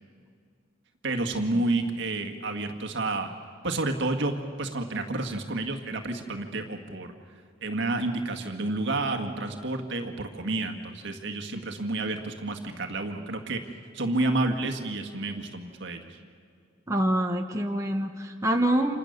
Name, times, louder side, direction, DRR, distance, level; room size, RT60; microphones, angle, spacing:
voice 1, 1.0-3.3 3.6-7.1 7.6-16.2, right 2 dB, 60° right, 4 dB, 1.8 m, -30 dB
voice 2, 16.9-19.0, right 1 dB, 15° right, 2 dB, 1.0 m, -26 dB
29.5 x 27.0 x 6.7 m, 2.2 s
head